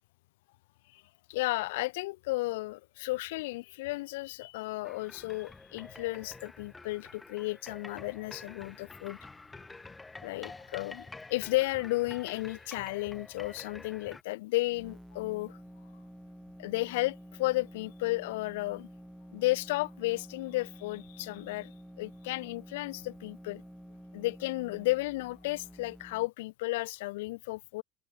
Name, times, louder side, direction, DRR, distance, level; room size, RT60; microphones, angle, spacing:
voice 1, 1.3-9.2 10.2-15.6 16.6-18.9 19.3-21.7 22.0-23.6 24.1-27.8, left 20 dB, 75° left, 0.7 m, -33 dB
sound 1, 4.8-14.2, left 3 dB, 15° left, 0.5 m, -49 dB
sound 2, 14.6-26.3, equal, ahead, 3.0 m, -50 dB
hypercardioid pair, 85°, 0 cm